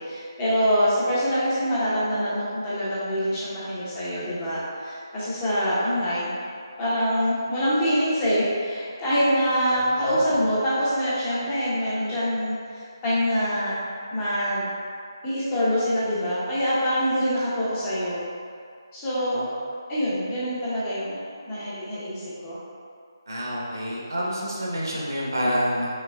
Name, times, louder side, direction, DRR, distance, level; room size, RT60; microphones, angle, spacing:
voice 1, 0.0-6.3 6.8-13.8 14.1-14.7 15.2-18.2 18.9-19.6 19.9-22.6, equal, 20° left, -10 dB, 0.9 m, -25 dB
voice 2, 9.7-10.1 19.3-19.4 23.3-25.9, equal, 60° right, -5 dB, 1.0 m, -28 dB
5.4 x 3.4 x 2.3 m, 2.3 s
figure-of-eight pair, 150°, 2 cm